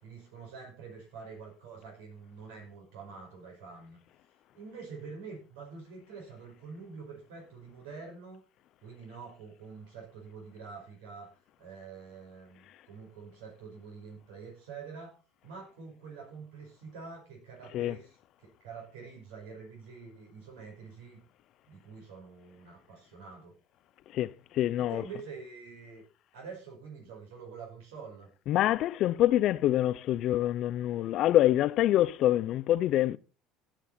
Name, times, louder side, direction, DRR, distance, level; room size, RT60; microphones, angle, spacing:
voice 1, 0.0-4.0 4.6-8.4 8.8-11.3 11.6-15.2 15.4-21.2 21.7-23.5 24.8-26.0 26.3-28.3, right 5 dB, 80° right, 5.4 m, -46 dB
voice 2, 24.1-25.0 28.5-33.2, left 13 dB, 60° left, 0.6 m, -26 dB
16.5 x 7.5 x 4.3 m
supercardioid pair, 85°, 0 cm